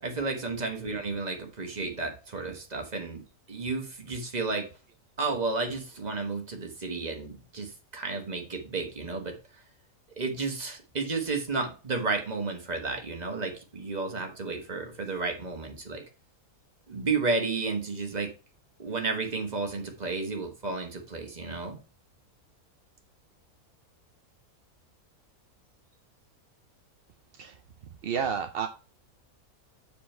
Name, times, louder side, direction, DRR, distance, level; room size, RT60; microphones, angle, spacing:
voice 1, 0.0-3.2 3.5-4.7 5.2-9.6 10.1-16.0 16.9-18.3 18.8-21.8, right 3 dB, 30° right, 3 dB, 1.5 m, -32 dB
voice 2, 28.0-28.7, right 7 dB, 55° right, 6 dB, 0.6 m, -30 dB
7.6 x 4.3 x 4.5 m, 0.35 s
omnidirectional pair, 1.5 m